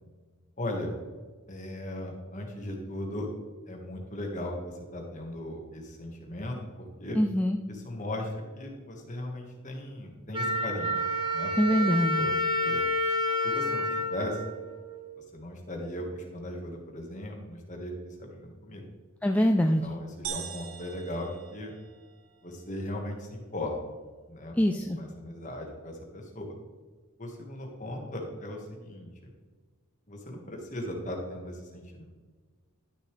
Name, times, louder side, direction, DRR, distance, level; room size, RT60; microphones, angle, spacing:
voice 1, 0.6-1.0 1.5-3.3 3.7-7.2 7.7-11.0 11.3-11.5 12.0-12.3 12.6-12.8 13.4-14.4 15.2-18.8 19.8-21.7 22.4-23.7 24.3-26.5 27.2-29.3 30.1-32.0, left 1 dB, 35° left, 1 dB, 1.7 m, -38 dB
voice 2, 7.2-7.6 11.6-12.3 19.2-19.9 24.5-25.0, equal, 5° left, 3 dB, 0.3 m, -24 dB
Wind instrument woodwind instrument, 10.3-15.1, left 1 dB, 25° right, 1.0 m, -29 dB
sound 1, 20.2-22.2, right 8 dB, 75° right, 1.0 m, -41 dB
11.5 x 6.5 x 3.3 m, 1.4 s
head